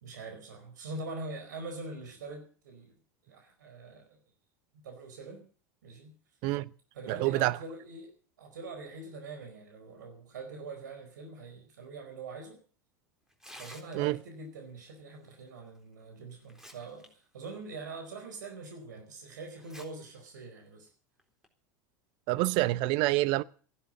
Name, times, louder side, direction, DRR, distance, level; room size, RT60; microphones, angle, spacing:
voice 1, 0.0-2.9 3.2-4.2 4.8-5.5 5.8-6.2 6.9-12.6 13.6-20.9, right 3 dB, 80° right, 4.6 m, -43 dB
voice 2, 7.1-7.5 13.9-14.2 22.3-23.4, right 18 dB, 55° right, 0.8 m, -27 dB
Tearing, 13.3-14.3 15.8-15.9 16.3-17.1 17.4-17.5 18.2-18.3 19.5-19.9 20.3-20.4 21.2-21.5, equal, 5° right, 3.9 m, -50 dB
14.5 x 11.5 x 7.8 m
hypercardioid pair, 90°, 10 cm